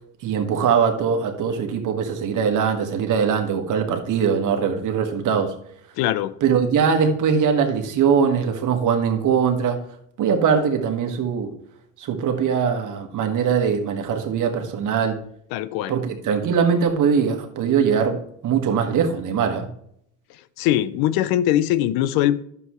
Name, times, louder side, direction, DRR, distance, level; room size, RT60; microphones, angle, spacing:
voice 1, 0.2-5.5 6.4-9.8 10.2-11.5 12.0-15.2 15.9-19.7, right 6 dB, 60° right, 4 dB, 1.7 m, -21 dB
voice 2, 6.0-6.3 15.5-15.9 20.6-22.4, left 12 dB, 85° left, 15 dB, 0.7 m, -21 dB
11.0 x 7.1 x 3.1 m, 0.68 s
cardioid pair, 115°, 35 cm